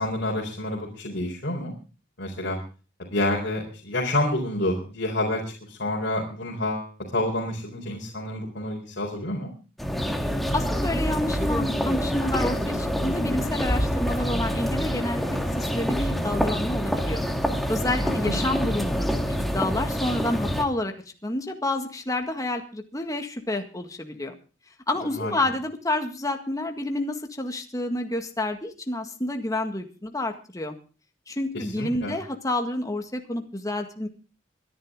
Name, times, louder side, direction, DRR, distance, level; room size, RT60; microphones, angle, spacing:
voice 1, 0.0-1.7 2.2-2.6 3.1-5.4 5.7-9.5 18.0-18.3 25.1-25.3 31.5-32.2, left 1 dB, 60° left, -2 dB, 4.2 m, -28 dB
sound 1, 9.8-20.6, equal, ahead, 1.9 m, -26 dB
voice 2, 10.5-17.2 17.7-20.9 21.2-24.4 24.9-30.8 31.3-34.1, left 2 dB, 20° left, 5 dB, 1.9 m, -29 dB
24.5 x 10.5 x 3.7 m, 0.36 s
head